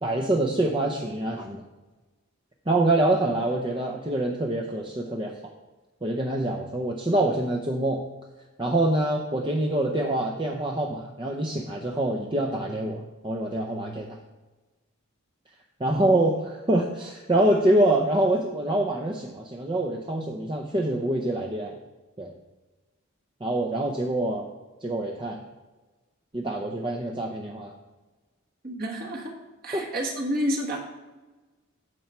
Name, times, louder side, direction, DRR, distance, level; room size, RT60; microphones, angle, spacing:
voice 1, 0.0-1.6 2.7-5.3 6.0-8.0 8.6-14.2 15.8-21.8 22.2-22.3 23.4-24.5 24.8-25.4 26.3-27.7 29.7-29.8, right 1 dB, 25° right, 1 dB, 0.7 m, -25 dB
voice 2, 28.6-29.3 29.6-30.8, equal, 45° right, -1 dB, 1.6 m, -29 dB
9.1 x 7.2 x 4.4 m, 1.2 s
head